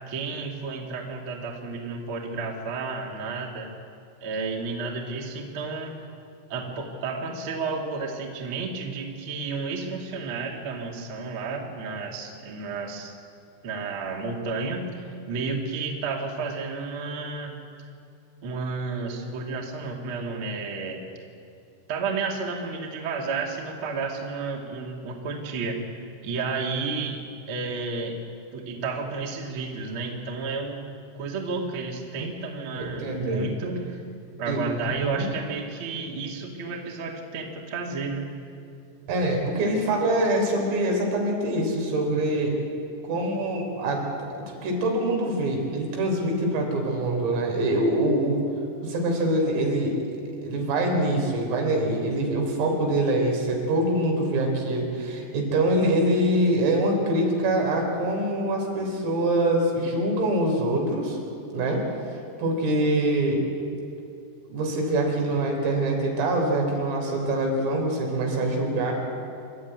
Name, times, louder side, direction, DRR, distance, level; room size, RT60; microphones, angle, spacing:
voice 1, 0.1-3.7 4.2-6.0 6.5-13.1 13.6-17.6 18.4-21.0 21.9-25.8 26.2-27.2 27.5-28.2 28.5-30.8 31.1-34.0 34.4-38.2, right 4 dB, 40° right, 0 dB, 1.9 m, -31 dB
voice 2, 32.8-33.5 34.5-34.6 35.0-35.2 39.1-42.6 43.0-48.4 48.8-50.2 50.4-61.2 61.5-61.9 62.4-63.4 64.5-68.9, right 1 dB, 85° right, 0 dB, 6.6 m, -24 dB
27.5 x 12.5 x 9.3 m, 2.5 s
omnidirectional pair, 5.7 m